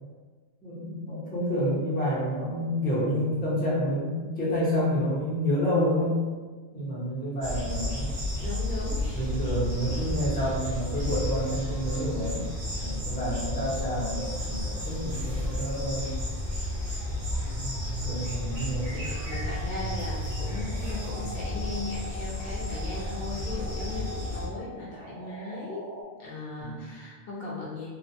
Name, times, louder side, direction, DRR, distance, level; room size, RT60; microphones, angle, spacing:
voice 1, 0.6-6.2 6.7-8.1 9.1-12.5 12.8-16.1 18.0-19.0 26.6-26.8, equal, 10° left, -8 dB, 0.6 m, -29 dB
sound 1, 7.4-24.5, left 1 dB, 85° right, 1.2 m, -32 dB
voice 2, 8.4-9.3 9.6-10.0 18.5-25.9 26.2-27.9, left 2 dB, 65° left, -6 dB, 0.7 m, -38 dB
sound 2, 14.6-21.5, right 2 dB, 45° right, 0.9 m, -39 dB
sound 3, 19.2-26.0, equal, 70° right, 0.8 m, -43 dB
2.7 x 2.1 x 2.6 m, 1.4 s
omnidirectional pair, 1.2 m